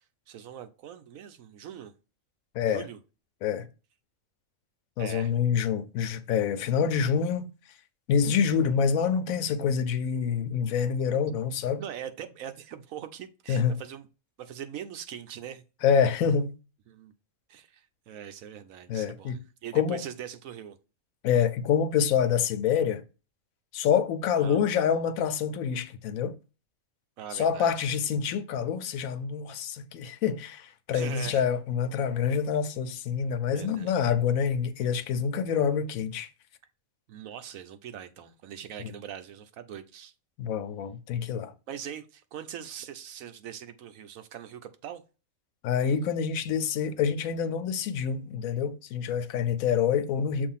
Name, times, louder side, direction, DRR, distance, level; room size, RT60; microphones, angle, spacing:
voice 1, 0.0-1.9 2.7-3.0 5.0-5.3 11.8-14.1 14.4-15.6 16.9-17.1 17.5-20.8 24.4-24.6 27.2-27.9 30.9-31.4 33.5-34.1 35.5-35.6 37.1-40.1 41.7-45.0, right 9 dB, 80° right, 1.1 m, -42 dB
voice 2, 2.5-2.9 3.4-3.7 5.0-7.5 8.1-11.8 13.5-13.8 15.8-16.5 18.9-19.4 19.7-20.0 21.2-23.0 23.7-26.4 27.3-36.3 38.8-38.9 40.4-41.5 45.6-50.5, left 7 dB, 90° left, 1.1 m, -26 dB
6.8 x 2.6 x 5.6 m
omnidirectional pair, 1.4 m